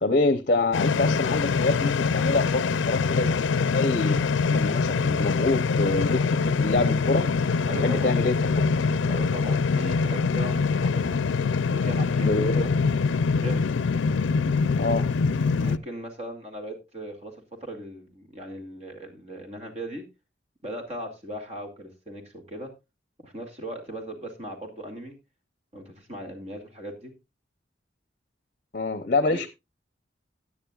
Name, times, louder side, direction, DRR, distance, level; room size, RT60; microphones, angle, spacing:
voice 1, 0.0-4.2 4.5-7.3 7.8-8.4 12.2-12.6 14.8-15.1 28.7-29.5, left 2 dB, 45° left, 12 dB, 0.7 m, -26 dB
sound 1, 0.7-15.8, left 4 dB, 90° left, 0.5 m, -24 dB
voice 2, 7.7-8.1 9.1-11.2 11.7-12.8 13.3-13.7 15.6-20.1 20.6-22.7 23.2-25.2 25.7-27.1 29.3-29.4, right 1 dB, 35° right, 4 dB, 2.4 m, -38 dB
16.0 x 9.8 x 2.4 m, 0.24 s
head